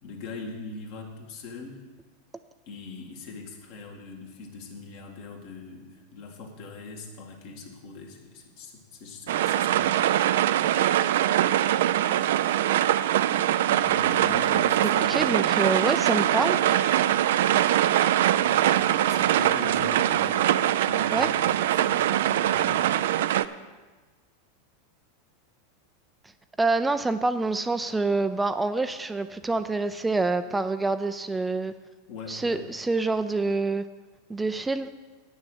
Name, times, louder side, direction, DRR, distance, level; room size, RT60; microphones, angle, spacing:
voice 1, 0.0-1.8 2.7-9.9 13.7-15.3 18.3-22.9 32.1-32.7, left 4 dB, 60° left, 1 dB, 2.1 m, -41 dB
sound 1, 9.3-23.5, right 12 dB, 70° right, 0.3 m, -23 dB
voice 2, 15.1-16.8 21.1-21.3 26.6-31.7 32.3-33.8 34.3-34.9, right 3 dB, 10° right, 10 dB, 0.4 m, -26 dB
9.0 x 6.7 x 8.0 m, 1.3 s
hypercardioid pair, 100°, 0 cm